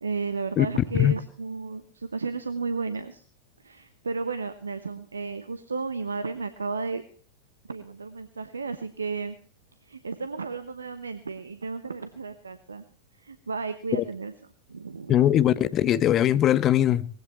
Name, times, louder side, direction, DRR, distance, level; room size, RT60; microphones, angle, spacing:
voice 1, 0.0-3.2 3.6-7.0 7.7-9.3 9.8-12.8 13.2-14.3 14.7-15.1, right 4 dB, 75° right, 0.9 m, -33 dB
voice 2, 15.1-17.1, left 11 dB, 30° left, 0.8 m, -21 dB
19.5 x 16.0 x 3.0 m
figure-of-eight pair, 90°, 0 cm